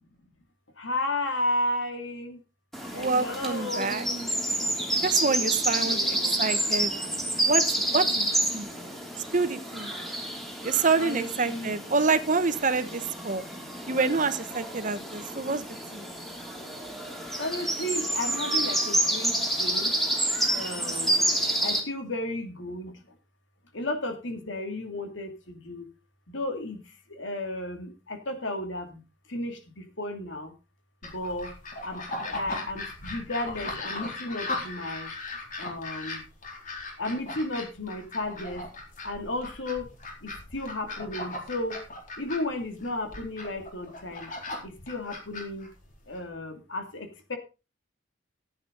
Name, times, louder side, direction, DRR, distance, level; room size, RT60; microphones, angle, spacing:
voice 1, 0.8-2.4 2.9-4.3 5.3-7.1 11.0-11.8 17.4-19.9 20.5-21.2 21.6-23.0 23.7-25.9 26.3-26.8 27.1-29.0 29.3-30.5 31.0-31.5 31.8-35.1 35.6-36.2 37.0-38.6 39.0-39.9 40.2-41.8 42.2-44.3 44.6-45.7 46.1-47.4, left 1 dB, 85° left, 6 dB, 2.6 m, -34 dB
sound 1, 2.7-21.8, right 1 dB, ahead, 3.0 m, -29 dB
voice 2, 2.9-4.1 5.0-6.9 7.4-8.7 9.3-9.9 10.6-13.4 13.9-15.6 15.9-16.0, right 4 dB, 45° right, 12 dB, 1.0 m, -27 dB
sound 2, 31.0-46.2, left 2 dB, 45° left, 4.2 m, -38 dB
15.0 x 8.9 x 3.9 m, 0.30 s
head